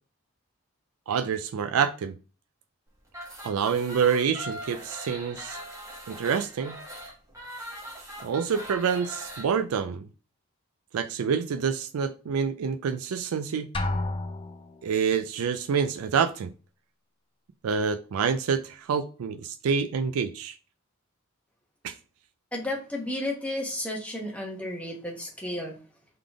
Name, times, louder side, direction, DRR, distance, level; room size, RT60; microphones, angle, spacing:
voice 1, 1.1-2.2 3.4-5.6 6.1-6.8 8.2-10.1 10.9-13.7 14.8-16.5 17.6-20.6 21.8-21.9, right 6 dB, 80° right, 0.4 m, -27 dB
sound 1, 3.1-9.5, equal, 15° right, 1.1 m, -41 dB
Drum, 13.7-14.9, left 2 dB, 25° left, 0.4 m, -31 dB
voice 2, 22.5-25.7, left 1 dB, 5° left, 1.1 m, -32 dB
3.9 x 3.4 x 3.5 m
head